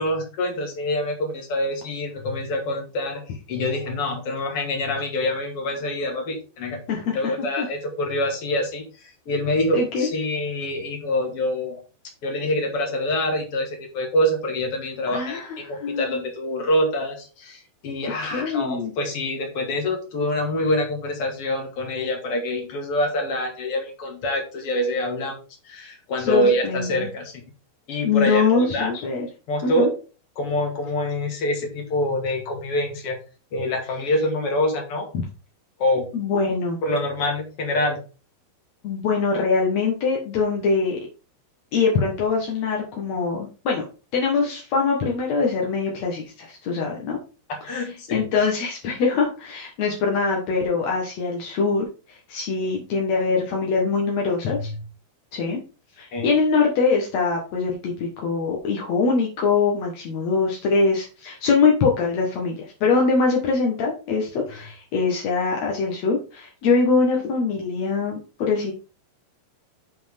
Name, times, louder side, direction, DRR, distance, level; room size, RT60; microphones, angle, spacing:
voice 1, 0.0-6.8 7.1-11.8 12.2-25.4 25.6-27.4 27.9-29.0 29.5-29.9 30.4-33.2 33.5-35.1 35.8-36.1 36.8-38.0 47.5-48.2 54.5-54.7 56.1-56.3, left 1 dB, 45° left, 2 dB, 2.2 m, -26 dB
voice 2, 9.7-10.1 15.1-16.2 18.3-18.9 26.2-27.1 28.0-29.3 29.6-29.9 36.1-36.8 38.8-41.0 41.7-43.8 44.1-47.2 47.7-47.8 48.1-54.7 55.3-55.6 56.0-68.7, left 4 dB, 70° left, -1 dB, 1.7 m, -23 dB
7.9 x 5.8 x 3.5 m, 0.33 s
omnidirectional pair, 5.1 m